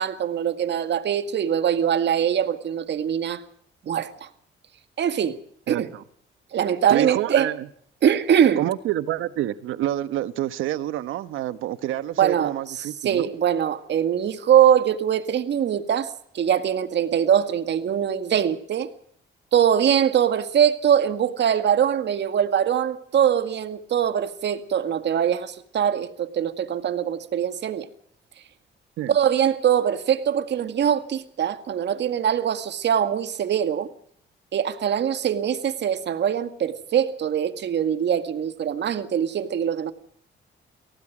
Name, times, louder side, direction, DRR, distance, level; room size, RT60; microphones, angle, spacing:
voice 1, 0.0-3.4 3.9-4.3 5.0-5.4 5.7-5.9 6.5-7.5 8.0-8.6 12.2-16.1 16.3-18.9 19.5-27.9 29.1-33.9 34.5-39.9, right 9 dB, 60° right, 2.0 m, -22 dB
voice 2, 5.7-6.0 6.9-7.7 8.6-13.3 29.0-29.1, right 13 dB, 85° right, 1.2 m, -27 dB
29.5 x 18.5 x 5.0 m
cardioid pair, 90°, 20 cm